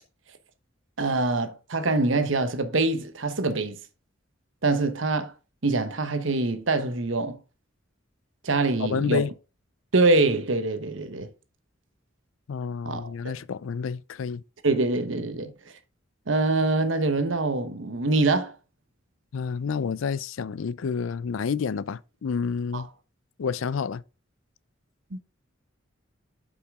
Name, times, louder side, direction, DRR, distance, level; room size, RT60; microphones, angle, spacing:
voice 1, 1.0-3.8 4.6-5.3 5.6-7.4 8.4-9.2 9.9-11.3 12.8-13.4 14.6-15.5 16.3-18.5 22.7-22.8 25.1-25.2, right 3 dB, 70° right, 1.1 m, -24 dB
voice 2, 8.8-9.3 12.5-14.4 19.3-22.9 23.4-24.0, left 6 dB, 80° left, 0.4 m, -29 dB
8.2 x 5.6 x 3.6 m
head